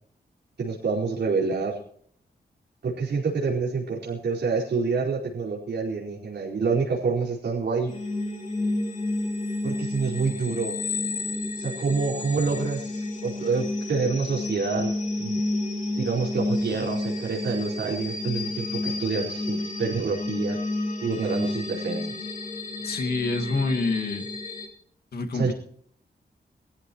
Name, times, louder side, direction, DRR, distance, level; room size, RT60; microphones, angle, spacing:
voice 1, 0.6-1.8 2.8-7.9 9.6-10.8 11.6-14.9 15.2-15.4 16.0-20.6 21.0-22.1 25.3-25.5, right 4 dB, 90° right, -5 dB, 4.7 m, -27 dB
sound 1, 7.9-24.7, left 2 dB, 45° left, 3.4 m, -30 dB
voice 2, 22.8-24.3 25.1-25.5, left 3 dB, 70° left, 6 dB, 2.1 m, -27 dB
23.5 x 14.0 x 3.1 m, 0.62 s
wide cardioid pair, 180°, 17 cm